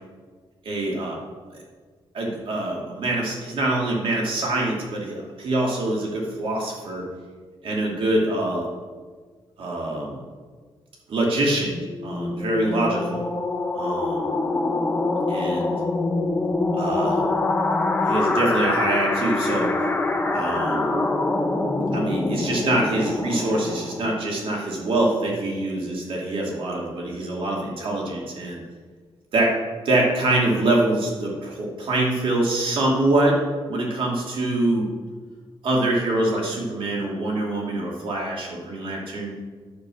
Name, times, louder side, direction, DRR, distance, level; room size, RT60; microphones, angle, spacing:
voice 1, 0.6-1.2 1.5-1.6 2.1-7.1 7.6-8.7 9.6-10.2 11.1-11.8 12.0-13.2 13.7-14.4 15.3-15.7 16.7-17.3 18.1-19.8 20.3-21.0 21.9-28.6 29.3-29.5 29.8-33.4 33.7-34.9 35.6-39.3, right 1 dB, 70° right, -1 dB, 2.6 m, -24 dB
sound 1, 11.6-24.3, left 2 dB, 15° left, 1.0 m, -25 dB
9.7 x 6.8 x 6.3 m, 1.5 s
cardioid pair, 120°, 9 cm